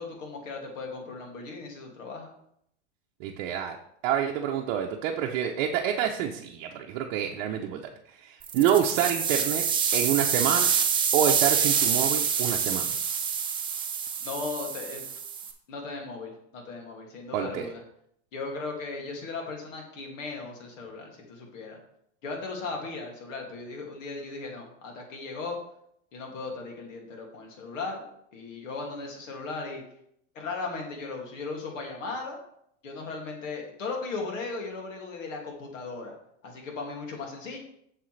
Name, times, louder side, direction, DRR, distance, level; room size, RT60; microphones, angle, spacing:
voice 1, 0.0-2.3 14.2-15.0 15.7-17.8 18.3-21.8 22.2-25.6 26.1-28.0 28.3-29.8 30.3-32.4 32.8-36.1 36.4-37.6, left 3 dB, 85° left, 1 dB, 2.4 m, -37 dB
voice 2, 3.2-3.8 4.0-7.8 8.1-9.6 9.9-10.7 11.1-13.0 17.3-17.7, right 9 dB, 55° right, 1 dB, 0.8 m, -27 dB
sound 1, 8.4-15.5, right 7 dB, 15° right, 0.5 m, -26 dB
7.6 x 6.7 x 3.3 m, 0.72 s
supercardioid pair, 145°, 38 cm